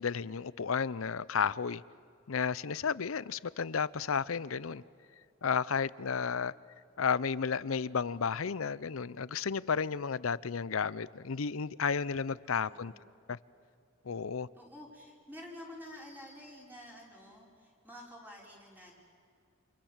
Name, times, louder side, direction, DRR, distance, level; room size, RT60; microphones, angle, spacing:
voice 1, 0.0-1.8 2.3-4.8 5.4-6.5 7.0-12.9 13.3-13.4 14.0-14.5, left 6 dB, 80° left, 0.6 m, -32 dB
voice 2, 12.4-13.0 14.6-18.9, left 1 dB, 10° right, 5.5 m, -50 dB
29.0 x 27.5 x 7.4 m
head